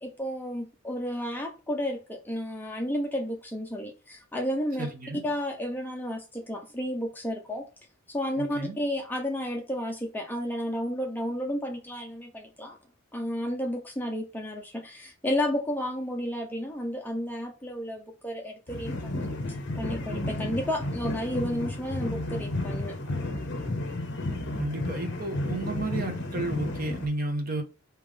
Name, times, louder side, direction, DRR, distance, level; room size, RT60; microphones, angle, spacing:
voice 1, 0.0-4.9 5.2-7.7 8.1-12.8 13.1-19.3 19.7-22.9, equal, 10° left, 0.7 m, -32 dB
voice 2, 4.8-5.2 8.4-8.8 24.6-27.6, right 2 dB, 40° right, 0.9 m, -32 dB
sound 1, 18.7-27.1, left 1 dB, 50° left, 0.9 m, -32 dB
3.6 x 3.1 x 4.8 m
head